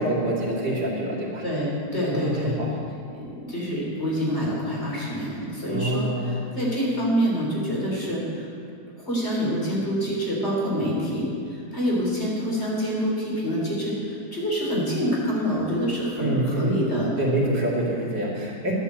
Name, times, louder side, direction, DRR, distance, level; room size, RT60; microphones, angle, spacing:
voice 1, 0.0-1.4 2.1-2.7 5.7-6.3 16.2-16.8 17.2-18.8, right 1 dB, 85° right, -3 dB, 3.0 m, -26 dB
voice 2, 1.4-2.6 3.1-8.5 9.0-17.1, equal, 40° left, -5 dB, 3.8 m, -26 dB
11.5 x 8.9 x 7.8 m, 2.4 s
omnidirectional pair, 1.8 m